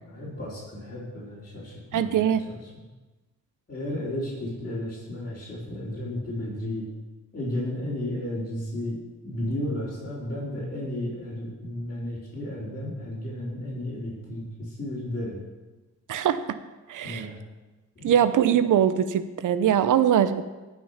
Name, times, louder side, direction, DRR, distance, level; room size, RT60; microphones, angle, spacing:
voice 1, 0.0-2.8 3.7-6.9 7.3-9.0 9.2-15.4 17.0-17.4 17.9-18.1, left 1 dB, 30° left, -9 dB, 4.6 m, -33 dB
voice 2, 1.9-2.4 16.1-16.6 16.9-17.3 18.0-20.4, right 9 dB, 85° right, 12 dB, 0.8 m, -22 dB
18.5 x 6.1 x 5.8 m, 1.2 s
cardioid pair, 105°, 30 cm